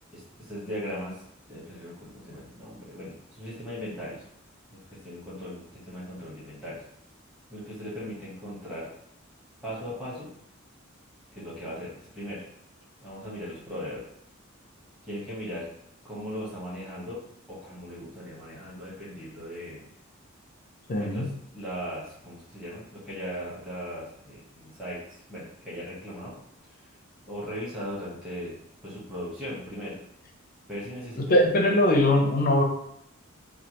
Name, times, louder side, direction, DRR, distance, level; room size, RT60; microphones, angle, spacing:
voice 1, 0.5-1.1 1.5-4.2 4.7-6.8 7.5-8.9 9.6-10.3 11.3-12.4 13.0-14.0 15.0-15.7 16.0-17.2 17.5-19.8 21.0-21.3 21.5-26.3 27.2-28.5 28.8-30.0 30.7-31.4, equal, 5° right, -10 dB, 1.1 m, -38 dB
voice 2, 20.9-21.3 31.2-32.6, left 1 dB, 45° left, 2 dB, 0.5 m, -21 dB
3.2 x 2.3 x 2.9 m, 0.73 s
head